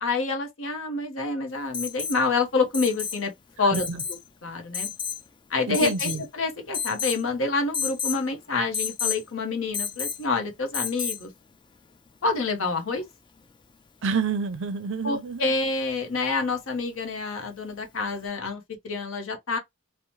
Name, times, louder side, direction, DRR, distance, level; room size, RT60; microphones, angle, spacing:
voice 1, 0.0-3.3 3.6-3.9 4.4-4.9 5.5-11.3 12.2-13.0 15.0-19.6, left 3 dB, 65° left, 0.8 m, -27 dB
Alarm, 1.7-2.2 2.7-3.2 3.7-4.2 4.7-5.2 5.7-6.3 6.7-7.2 7.7-8.2 8.7-9.2 9.7-10.2 10.7-11.2 13.0-13.1, left 7 dB, 20° left, 0.3 m, -30 dB
voice 2, 3.6-4.0 5.7-6.2 14.0-15.4, right 5 dB, 60° right, 0.5 m, -28 dB
2.8 x 2.1 x 2.9 m
head